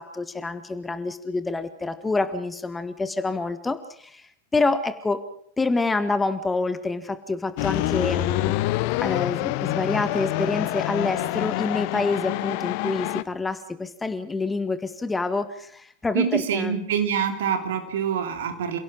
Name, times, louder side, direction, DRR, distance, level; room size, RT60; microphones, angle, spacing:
voice 1, 0.0-5.2 5.6-8.5 9.0-16.8, left 3 dB, 10° left, 12 dB, 1.4 m, -27 dB
sound 1, 7.6-13.2, left 18 dB, 45° left, 0.8 m, -26 dB
voice 2, 16.1-18.8, right 8 dB, 55° right, 7 dB, 3.0 m, -25 dB
28.0 x 17.0 x 6.2 m, 0.63 s
figure-of-eight pair, 90°, 0 cm